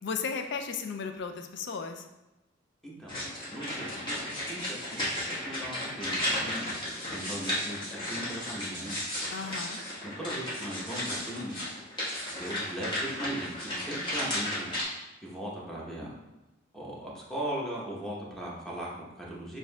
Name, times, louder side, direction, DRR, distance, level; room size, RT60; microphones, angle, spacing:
voice 1, 0.0-2.1 9.3-9.8, left 5 dB, 65° left, 6 dB, 0.4 m, -35 dB
voice 2, 2.8-3.2 3.5-6.7 7.1-9.0 10.0-11.7 12.4-14.9 15.2-16.1 16.7-19.6, right 1 dB, ahead, -5 dB, 0.9 m, -38 dB
sound 1, 3.1-14.8, left 1 dB, 25° left, 1.2 m, -34 dB
6.8 x 2.7 x 2.2 m, 1.0 s
head